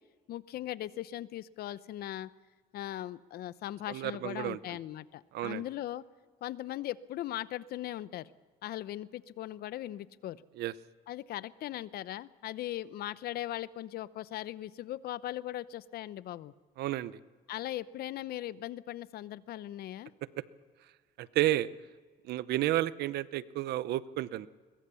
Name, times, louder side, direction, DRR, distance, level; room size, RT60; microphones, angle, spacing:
voice 1, 0.3-2.3 2.7-6.0 6.4-8.3 8.6-10.4 11.1-16.5 17.5-20.1, left 13 dB, 65° left, 17 dB, 0.8 m, -39 dB
voice 2, 3.9-4.8 5.3-5.6 10.6-10.7 16.8-17.2 21.2-21.7 22.2-24.5, right 15 dB, 75° right, 17 dB, 0.8 m, -31 dB
22.0 x 21.5 x 7.0 m, 1.5 s
cardioid pair, 110°, 17 cm